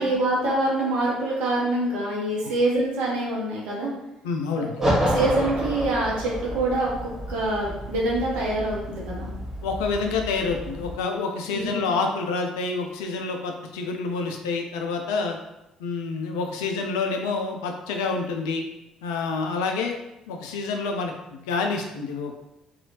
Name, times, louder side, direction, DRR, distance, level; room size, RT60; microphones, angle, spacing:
voice 1, 0.0-3.9 4.6-4.7 5.0-9.3 11.5-11.8, right 2 dB, 60° right, -4 dB, 0.8 m, -25 dB
voice 2, 4.2-4.7 9.6-15.4 15.8-18.6 19.0-19.9 20.3-22.3, left 4 dB, 70° left, 3 dB, 0.4 m, -28 dB
Three balloons burst under a brick arch, 4.8-11.0, equal, 15° right, 1.1 m, -29 dB
2.7 x 2.4 x 2.9 m, 0.92 s
figure-of-eight pair, 45°, 3 cm